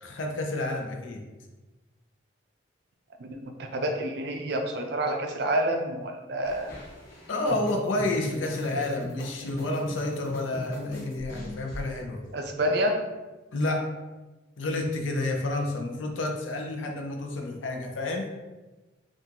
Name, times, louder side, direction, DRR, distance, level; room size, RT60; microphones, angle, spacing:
voice 1, 0.0-1.2 7.3-12.2 13.5-13.9 14.6-18.3, left 2 dB, 80° left, 2 dB, 0.5 m, -30 dB
voice 2, 3.2-6.7 12.3-13.0, right 1 dB, 55° right, 4 dB, 0.4 m, -28 dB
sound 1, 6.4-11.9, equal, 50° left, 1.1 m, -39 dB
3.6 x 2.4 x 2.8 m, 1.2 s
head